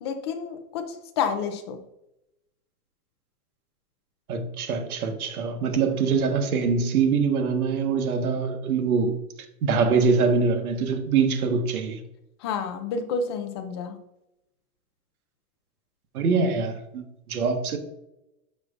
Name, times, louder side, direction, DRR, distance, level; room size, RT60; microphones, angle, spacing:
voice 1, 0.0-1.8 12.4-14.0, left 5 dB, 20° left, 0.4 m, -29 dB
voice 2, 4.3-9.2 9.6-12.0 16.1-17.8, right 5 dB, 70° right, 1.5 m, -24 dB
9.6 x 6.2 x 2.5 m
hypercardioid pair, 155°, 45 cm